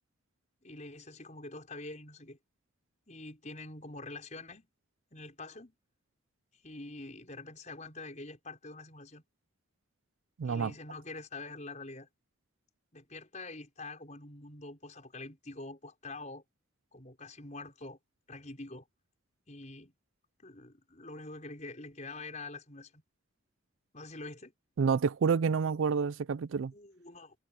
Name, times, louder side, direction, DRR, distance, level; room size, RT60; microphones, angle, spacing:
voice 1, 0.6-2.4 3.1-4.7 5.1-5.7 6.6-9.2 10.4-12.1 12.9-16.4 16.9-18.0 18.3-18.8 19.5-19.9 20.4-23.0 23.9-24.5 26.7-27.4, left 2 dB, 35° left, 5.5 m, -45 dB
voice 2, 10.4-10.7 24.8-26.7, right 6 dB, 70° right, 0.4 m, -28 dB
head